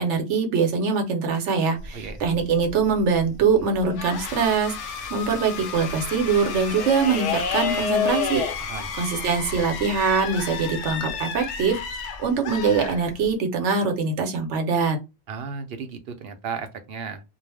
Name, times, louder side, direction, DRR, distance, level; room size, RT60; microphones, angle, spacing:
voice 1, 0.0-8.7 8.9-11.8 12.2-15.0, right 5 dB, 85° right, 1.0 m, -23 dB
sound 1, 1.8-4.3 5.0-5.3 5.7-12.2 13.2-13.3, left 6 dB, 55° left, 0.4 m, -30 dB
sound 2, 4.0-13.5, left 6 dB, 90° left, 0.9 m, -34 dB
voice 2, 8.6-8.9 15.3-17.2, right 5 dB, 65° right, 0.8 m, -34 dB
2.4 x 2.0 x 3.2 m
omnidirectional pair, 1.2 m